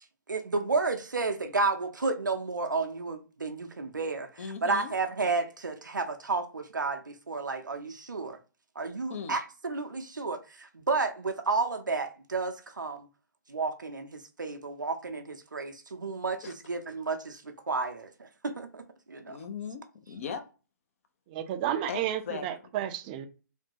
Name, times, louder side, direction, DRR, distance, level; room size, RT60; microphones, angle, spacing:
voice 1, 0.3-4.3 4.6-8.4 8.8-13.1 13.5-19.4, right 3 dB, 80° right, 0.6 m, -32 dB
voice 2, 4.4-4.9 9.1-9.4 16.4-16.5 19.3-20.4 21.9-22.4, left 6 dB, 45° left, 0.6 m, -38 dB
voice 3, 21.3-23.3, right 11 dB, 30° right, 0.4 m, -32 dB
3.3 x 2.2 x 2.8 m
figure-of-eight pair, 130°, 10 cm